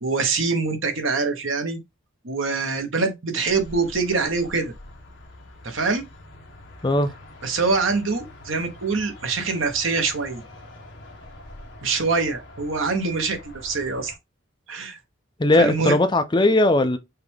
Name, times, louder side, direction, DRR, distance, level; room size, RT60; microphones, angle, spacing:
voice 1, 0.0-1.8 2.2-4.7 5.6-6.0 7.4-10.4 11.8-14.1 14.7-15.0 15.5-16.0, right 4 dB, 65° right, 1.1 m, -24 dB
sound 1, 3.5-14.2, left 1 dB, 55° left, 1.2 m, -44 dB
voice 2, 15.4-17.0, left 2 dB, 20° left, 0.5 m, -18 dB
5.8 x 2.5 x 3.5 m
head